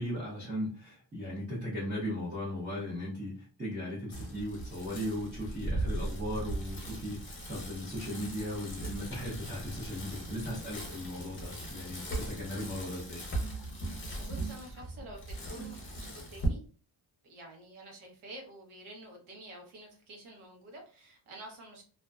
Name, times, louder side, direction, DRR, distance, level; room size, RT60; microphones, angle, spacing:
voice 1, 0.0-13.2, left 1 dB, 20° right, -8 dB, 0.7 m, -37 dB
Bicycle, 4.1-16.5, right 1 dB, 25° left, 0.6 m, -39 dB
voice 2, 14.2-16.6 17.2-21.8, right 1 dB, 85° right, 2 dB, 1.0 m, -49 dB
2.5 x 2.1 x 2.3 m, 0.40 s
wide cardioid pair, 170°, 48 cm